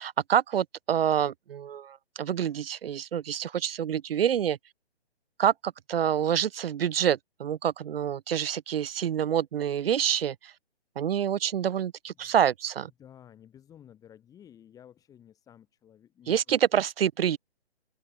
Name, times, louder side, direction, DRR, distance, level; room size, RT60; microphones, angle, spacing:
voice 1, 0.0-4.6 5.4-10.5 11.0-12.9 16.3-17.4, right 9 dB, 65° right, 0.6 m, -27 dB
voice 2, 13.0-16.4, left 10 dB, 10° left, 2.0 m, -53 dB
open air
hypercardioid pair, 150°, 32 cm